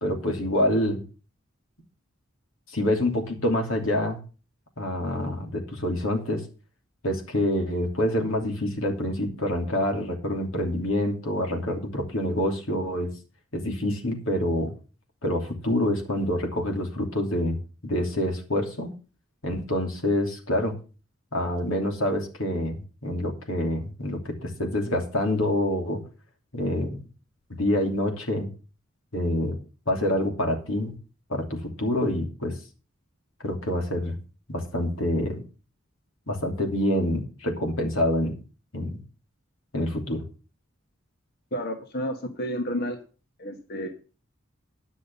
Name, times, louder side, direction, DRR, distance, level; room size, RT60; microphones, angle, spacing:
voice 1, 0.0-1.0 2.7-4.2 4.8-6.4 7.0-13.1 13.5-14.7 15.2-18.9 19.4-20.7 21.3-26.0 26.5-27.0 27.5-28.5 29.1-29.6 29.9-30.9 31.3-32.6 33.4-34.2 34.5-35.4 36.3-38.3 38.7-39.0 39.7-40.2, left 1 dB, 90° left, 2 dB, 3.0 m, -26 dB
voice 2, 41.5-43.0 43.4-43.9, equal, 50° left, 4 dB, 1.5 m, -30 dB
11.0 x 6.2 x 7.0 m, 0.35 s
head